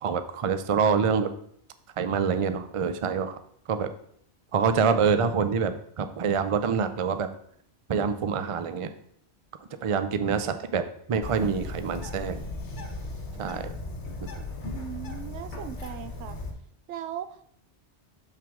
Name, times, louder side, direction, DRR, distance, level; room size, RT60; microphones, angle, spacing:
voice 1, 0.0-1.3 2.0-3.4 3.7-3.9 4.5-7.3 7.9-8.9 9.8-10.8 11.1-12.4 13.4-13.7, right 6 dB, 55° right, 10 dB, 0.3 m, -26 dB
Bird, 11.2-16.5, left 2 dB, 75° left, 1.4 m, -37 dB
voice 2, 14.7-16.4 16.9-17.6, right 9 dB, 80° right, 11 dB, 0.9 m, -38 dB
6.6 x 6.0 x 3.6 m, 0.67 s
omnidirectional pair, 1.2 m